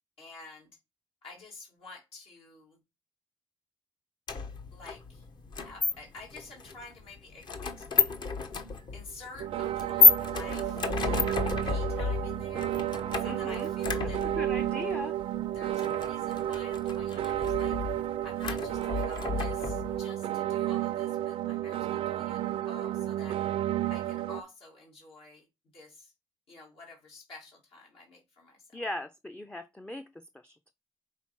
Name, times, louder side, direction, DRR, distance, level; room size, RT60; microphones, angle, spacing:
voice 1, 0.2-0.7 1.2-2.8 4.7-5.3 5.6-7.9 8.9-12.7 13.2-14.2 15.5-17.8 18.2-23.4 23.9-25.5 25.7-26.1 26.5-28.7, left 3 dB, 75° left, 2.5 m, -49 dB
sound 1, 4.3-20.0, left 4 dB, 50° left, 1.0 m, -30 dB
sound 2, 9.4-24.4, right 12 dB, 85° right, 0.4 m, -32 dB
voice 2, 13.2-13.7 14.0-15.2 28.7-30.7, left 1 dB, 10° left, 0.4 m, -39 dB
5.8 x 3.9 x 4.4 m
cardioid pair, 110°, 9 cm